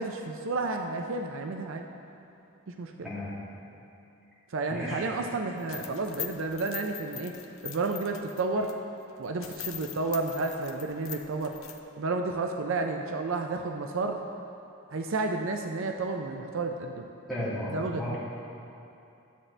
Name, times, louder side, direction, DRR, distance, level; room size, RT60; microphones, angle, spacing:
voice 1, 0.0-1.8 2.7-3.1 4.5-7.3 7.6-8.7 9.2-11.5 12.0-14.2 14.9-17.1 17.7-18.2, right 3 dB, 70° right, 4 dB, 0.5 m, -31 dB
voice 2, 4.7-5.0 17.3-18.2, left 1 dB, ahead, -11 dB, 2.2 m, -34 dB
sound 1, 5.6-8.7 9.1-9.2 9.4-11.8, left 10 dB, 75° left, 0.6 m, -41 dB
12.0 x 7.4 x 3.3 m, 2.8 s
head